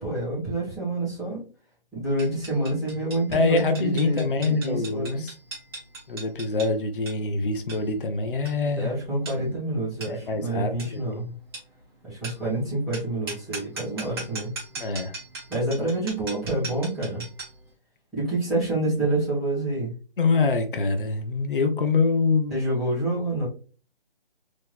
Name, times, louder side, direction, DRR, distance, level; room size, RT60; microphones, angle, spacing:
voice 1, 0.0-1.4 1.9-5.2 8.8-11.3 12.0-14.5 15.5-17.2 18.1-19.9 22.5-23.5, right 2 dB, ahead, 1.2 m, -27 dB
sound 1, 2.2-17.6, right 3 dB, 25° right, 1.2 m, -40 dB
voice 2, 3.3-5.3 6.1-9.0 10.1-11.2 14.8-15.2 20.2-22.5, left 4 dB, 60° left, 0.8 m, -25 dB
3.7 x 3.1 x 2.5 m
hypercardioid pair, 170°, 31 cm